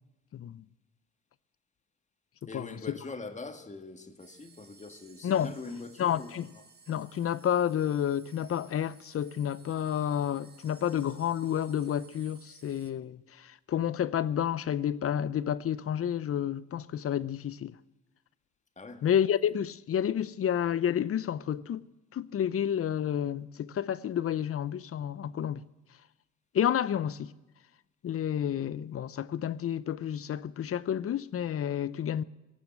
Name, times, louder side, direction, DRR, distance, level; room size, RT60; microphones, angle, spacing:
voice 1, 0.3-0.6 2.5-2.8 5.2-5.5 6.0-6.5 6.9-17.7 19.0-21.8 22.1-25.6 26.5-27.3 28.0-32.2, left 9 dB, 50° left, 0.7 m, -30 dB
voice 2, 2.5-6.6 18.8-19.1, left 3 dB, 25° left, 1.9 m, -43 dB
sound 1, 4.2-12.9, right 4 dB, 35° right, 1.7 m, -58 dB
18.0 x 7.0 x 10.0 m
cardioid pair, 90°, 30 cm